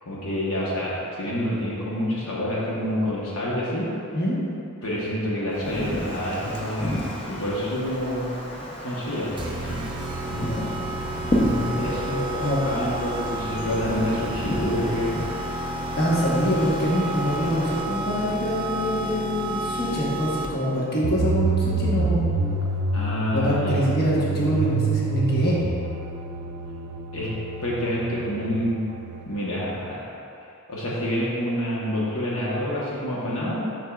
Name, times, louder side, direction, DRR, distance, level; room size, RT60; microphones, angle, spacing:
voice 1, 0.0-3.9 4.8-6.9 7.3-9.3 9.6-9.8 11.8-15.1 22.9-23.8 27.1-27.3 27.6-28.8 29.3-30.0 30.7-33.6, equal, 65° left, -6 dB, 1.1 m, -27 dB
Wind, 5.5-17.8, equal, 25° left, 0.8 m, -32 dB
sound 1, 9.4-20.8, right 1 dB, 20° right, 0.5 m, -31 dB
voice 2, 10.3-10.8 11.3-12.1 12.4-12.6 16.0-22.3 23.3-25.6, equal, 45° left, -7 dB, 1.2 m, -25 dB
sound 2, 21.0-29.9, right 3 dB, 90° right, 0.4 m, -28 dB
6.9 x 6.4 x 2.4 m, 2.7 s
head